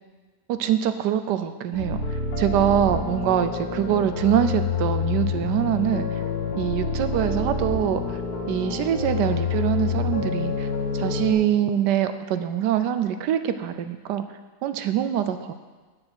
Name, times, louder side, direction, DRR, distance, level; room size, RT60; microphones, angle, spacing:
voice 1, 0.5-2.0 2.4-6.1 6.6-8.2 8.5-10.7 10.9-14.2 14.6-15.5, right 10 dB, 85° right, 10 dB, 1.2 m, -24 dB
sound 1, 1.7-11.3, left 4 dB, 65° left, 1.8 m, -27 dB
8.7 x 6.0 x 7.9 m, 1.3 s
omnidirectional pair, 1.8 m